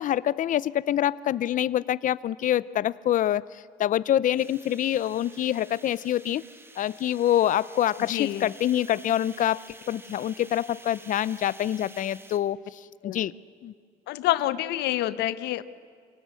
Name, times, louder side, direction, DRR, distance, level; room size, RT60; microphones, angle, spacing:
voice 1, 0.0-3.5 3.8-6.4 6.8-13.3 13.6-13.7, left 11 dB, 50° left, 19 dB, 0.6 m, -26 dB
sound 1, 4.4-12.4, right 2 dB, 15° right, 1.5 m, -49 dB
voice 2, 8.1-8.5 13.0-13.2 14.1-15.6, left 14 dB, 85° left, 15 dB, 0.9 m, -27 dB
26.5 x 18.0 x 8.3 m, 2.2 s
cardioid pair, 110°, 17 cm